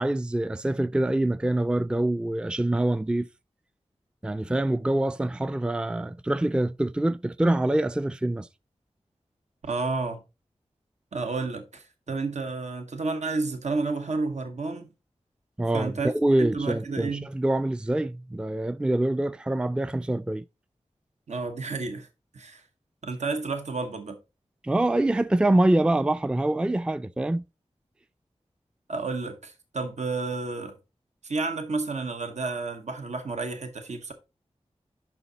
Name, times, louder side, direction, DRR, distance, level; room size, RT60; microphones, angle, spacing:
voice 1, 0.0-3.3 4.2-8.5 15.6-20.4 24.6-27.4, right 1 dB, 10° right, 0.3 m, -25 dB
voice 2, 9.6-10.2 11.1-14.9 15.7-16.1 16.4-17.3 21.3-22.1 22.3-22.6 23.0-24.2 28.9-30.7 31.2-34.1, right 3 dB, 80° right, 0.9 m, -31 dB
6.9 x 5.8 x 3.9 m
wide cardioid pair, 70°, 12 cm